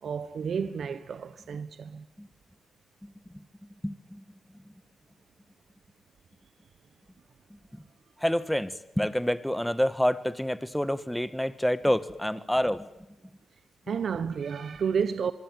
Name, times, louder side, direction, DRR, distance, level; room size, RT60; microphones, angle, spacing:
voice 1, 0.0-2.0 13.9-15.3, right 6 dB, 65° right, 1.2 m, -31 dB
voice 2, 3.0-3.4 3.8-4.2 7.7-7.8 8.2-12.9, equal, 5° left, 1.6 m, -28 dB
24.5 x 23.5 x 9.4 m
cardioid pair, 80°, 0 cm